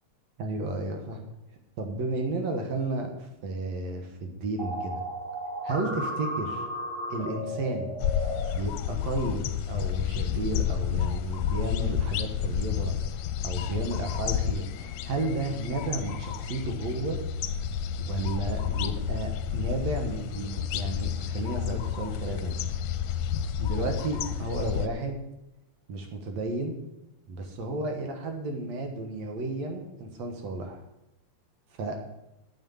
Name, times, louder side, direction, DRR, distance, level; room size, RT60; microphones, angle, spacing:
voice 1, 0.4-1.2 1.8-5.0 5.6-6.7 7.1-7.9 8.6-12.9 13.4-17.2 18.0-22.6 23.6-25.2 25.9-26.8 27.3-30.8 31.8-32.0, right 2 dB, 70° right, 4 dB, 2.6 m, -33 dB
sound 1, 4.6-8.5, equal, 15° right, 4.7 m, -34 dB
sound 2, 8.0-24.9, left 9 dB, 75° left, 1.8 m, -30 dB
8.3 x 8.3 x 7.0 m, 0.94 s
omnidirectional pair, 3.3 m